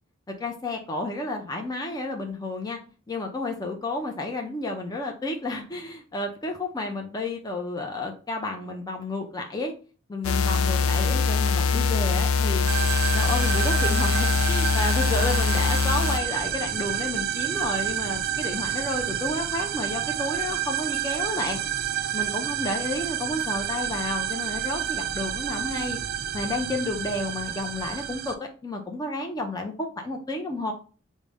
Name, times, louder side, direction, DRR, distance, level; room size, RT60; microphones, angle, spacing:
voice 1, 0.4-2.8 3.1-9.7 10.1-12.7 13.1-21.6 22.1-26.0 26.3-30.7, left 2 dB, 20° left, 3 dB, 0.4 m, -31 dB
sound 1, 10.2-16.2, left 5 dB, 85° left, 0.4 m, -23 dB
sound 2, 12.7-28.4, right 10 dB, 50° right, 0.4 m, -29 dB
4.9 x 2.1 x 3.3 m, 0.37 s
head